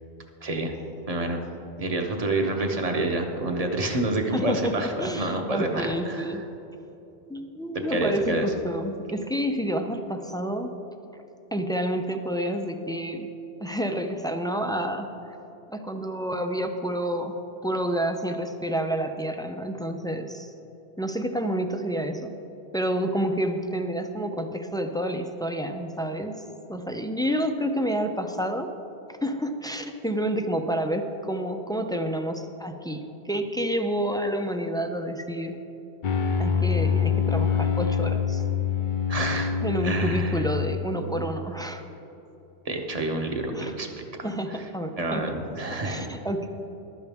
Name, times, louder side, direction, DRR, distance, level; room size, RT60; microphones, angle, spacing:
voice 1, 0.4-0.7 1.1-1.4 1.8-6.3 7.9-8.5 39.1-39.5 39.8-40.4 42.6-44.0 44.5-44.6 45.0-46.0, right 2 dB, 35° right, 3 dB, 1.1 m, -28 dB
voice 2, 4.3-6.4 7.3-10.7 11.5-13.3 13.6-15.1 15.7-20.5 21.0-22.4 22.7-26.4 26.7-28.7 29.1-35.6 36.4-38.4 39.6-41.8 43.5-43.7 44.2-45.2 45.8-46.5, equal, 5° left, 5 dB, 0.4 m, -29 dB
sound 1, 36.0-41.2, left 7 dB, 50° left, 0.8 m, -25 dB
14.5 x 11.5 x 3.5 m, 3.0 s
omnidirectional pair, 1.1 m